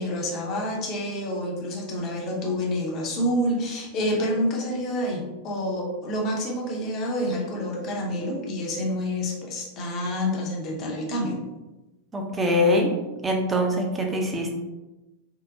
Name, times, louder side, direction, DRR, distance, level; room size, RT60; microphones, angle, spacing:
voice 1, 0.0-11.4, equal, 35° left, -1 dB, 0.7 m, -28 dB
voice 2, 12.1-12.9 13.2-14.5, left 1 dB, 15° right, 1 dB, 0.5 m, -23 dB
3.6 x 2.1 x 2.7 m, 1.1 s
figure-of-eight pair, 90°, 0 cm